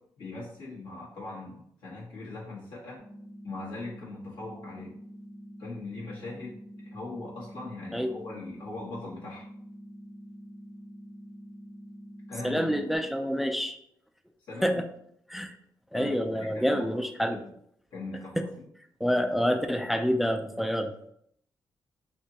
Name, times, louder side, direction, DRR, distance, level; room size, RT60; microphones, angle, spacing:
voice 1, 0.2-3.0 3.4-4.9 5.6-9.4 12.3-12.8 14.5-14.8 15.9-16.2 16.5-17.0 17.3-17.4 17.9-18.6, left 3 dB, 90° left, -6 dB, 1.4 m, -40 dB
sound 1, 3.0-13.0, equal, 65° left, 1.0 m, -46 dB
voice 2, 12.4-13.8 14.6-14.9 15.3-15.6 15.9-17.5 18.4-18.5 19.0-21.0, equal, ahead, 6 dB, 0.4 m, -27 dB
3.4 x 2.8 x 2.7 m, 0.69 s
cardioid pair, 55°, 8 cm